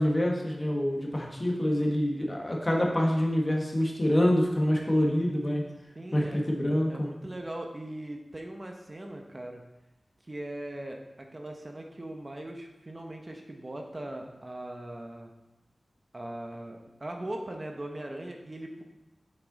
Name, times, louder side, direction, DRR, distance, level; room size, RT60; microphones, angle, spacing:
voice 1, 0.0-5.6 6.1-7.1, left 1 dB, 30° left, -1 dB, 1.6 m, -26 dB
voice 2, 5.9-6.4 6.9-9.6 10.3-15.3 16.1-18.8, right 1 dB, 35° right, 2 dB, 0.9 m, -40 dB
6.7 x 6.1 x 4.0 m, 1.0 s
wide cardioid pair, 60°, 0 cm